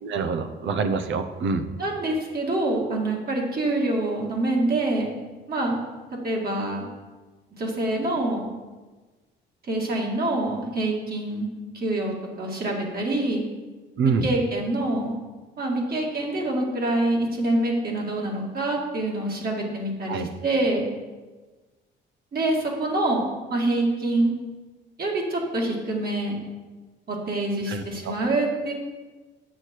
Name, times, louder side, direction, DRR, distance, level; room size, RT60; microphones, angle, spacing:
voice 1, 0.0-1.7 14.0-14.3 20.1-20.3 27.7-28.2, right 5 dB, 75° right, 9 dB, 0.8 m, -26 dB
voice 2, 1.8-5.1 5.5-5.8 6.2-6.9 7.6-8.5 9.7-11.5 11.7-13.4 14.0-15.2 15.6-20.8 22.3-24.3 25.0-26.4 27.1-28.7, right 2 dB, 50° right, -2 dB, 2.2 m, -26 dB
8.2 x 6.4 x 4.5 m, 1.3 s
cardioid pair, 90°, 20 cm